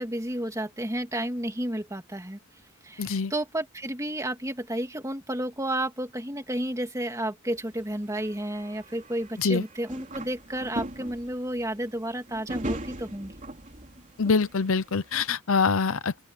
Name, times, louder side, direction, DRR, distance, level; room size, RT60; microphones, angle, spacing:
voice 1, 0.0-2.4 2.8-13.3, right 1 dB, 15° right, 2.7 m, -31 dB
voice 2, 3.0-3.3 9.4-9.6 14.2-16.2, left 5 dB, 70° left, 0.8 m, -24 dB
sound 1, 7.5-15.2, right 1 dB, 35° right, 3.4 m, -40 dB
open air
head